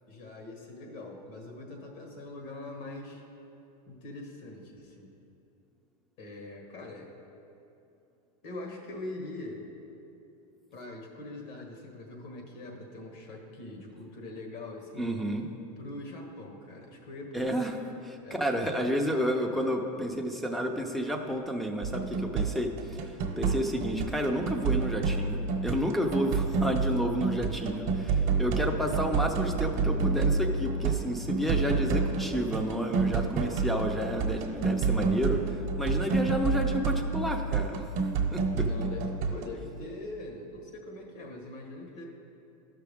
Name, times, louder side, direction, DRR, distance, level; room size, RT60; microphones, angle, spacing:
voice 1, 0.1-3.2 3.9-5.1 6.2-7.1 8.4-9.7 10.7-15.1 15.8-17.8 18.2-18.4 38.6-42.1, left 2 dB, 50° left, 2 dB, 1.5 m, -42 dB
voice 2, 15.0-15.5 17.3-17.8 18.0-37.8 38.3-38.7, equal, ahead, 3 dB, 0.6 m, -31 dB
sound 1, 21.8-39.5, right 4 dB, 50° right, 1.0 m, -29 dB
12.0 x 5.9 x 3.6 m, 2.8 s
supercardioid pair, 125°, 19 cm